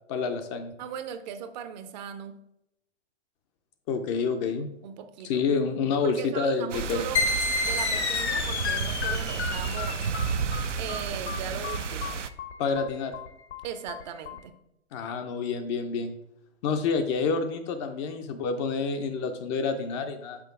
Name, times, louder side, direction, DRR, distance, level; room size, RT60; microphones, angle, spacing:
voice 1, 0.1-0.7 3.9-4.7 5.2-7.0 12.6-13.2 14.9-16.1 16.6-20.4, left 5 dB, 25° left, 6 dB, 0.4 m, -28 dB
voice 2, 0.8-2.4 4.8-5.4 6.0-7.3 7.6-10.5 10.8-12.2 13.6-14.5, right 8 dB, 40° right, 10 dB, 0.6 m, -38 dB
sound 1, 6.7-12.3, right 6 dB, 90° right, 0.5 m, -32 dB
sound 2, 7.2-14.4, left 4 dB, 65° left, 1.0 m, -30 dB
6.0 x 5.0 x 3.6 m, 0.79 s
figure-of-eight pair, 115°, 35 cm